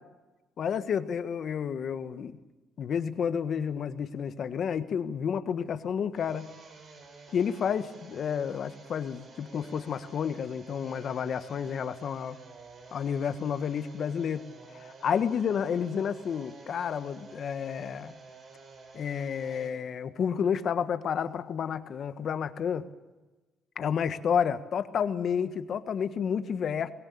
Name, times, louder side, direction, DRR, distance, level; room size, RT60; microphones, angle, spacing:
voice 1, 0.6-2.4 2.8-6.5 7.3-12.4 12.9-14.4 14.7-18.1 18.9-22.8 23.8-26.9, left 7 dB, 60° left, 10 dB, 1.5 m, -30 dB
sound 1, 6.1-19.7, right 4 dB, 55° right, 6.6 m, -51 dB
24.0 x 18.5 x 8.6 m, 1.1 s
cardioid pair, 90°, 0 cm